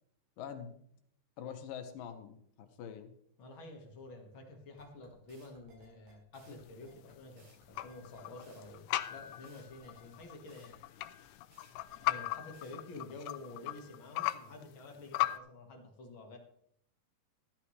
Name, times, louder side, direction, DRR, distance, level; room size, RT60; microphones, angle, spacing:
voice 1, 0.4-0.7 1.4-3.1, left 8 dB, 70° left, 6 dB, 2.6 m, -45 dB
voice 2, 3.4-10.8 12.1-16.4, left 2 dB, 45° left, 2 dB, 1.7 m, -50 dB
sound 1, 4.8-12.7, right 1 dB, 50° right, 5.0 m, -63 dB
sound 2, 6.5-15.4, left 16 dB, 90° left, 2.8 m, -39 dB
14.0 x 13.0 x 3.2 m, 0.70 s
omnidirectional pair, 4.7 m